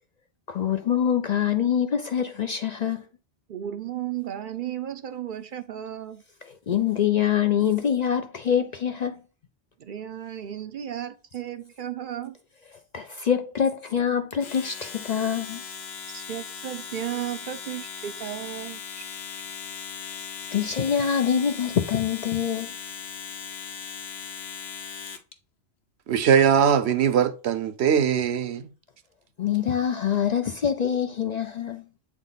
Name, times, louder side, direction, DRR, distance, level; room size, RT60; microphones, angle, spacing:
voice 1, 0.5-3.0 6.7-9.2 12.9-15.6 20.5-22.7 29.4-31.8, left 8 dB, 50° left, 0.5 m, -25 dB
voice 2, 3.5-6.2 9.8-12.4 16.1-19.0 19.3-19.4, right 11 dB, 60° right, 0.6 m, -34 dB
Domestic sounds home sounds, 14.3-25.3, left 6 dB, 70° left, 1.1 m, -38 dB
voice 3, 26.1-28.7, right 8 dB, 75° right, 0.9 m, -21 dB
8.1 x 3.6 x 3.9 m
omnidirectional pair, 1.1 m